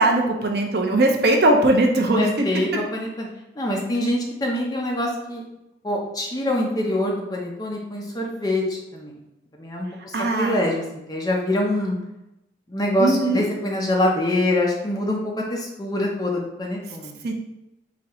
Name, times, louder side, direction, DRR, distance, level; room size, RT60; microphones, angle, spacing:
voice 1, 0.0-2.3 10.1-10.6 13.0-13.5 17.2-17.3, right 2 dB, 55° right, 2 dB, 0.6 m, -19 dB
voice 2, 2.1-3.3 3.5-5.4 5.8-9.2 9.6-10.8 11.1-12.0 12.7-17.2, left 1 dB, 20° left, -1 dB, 0.7 m, -24 dB
4.1 x 2.8 x 4.2 m, 0.91 s
head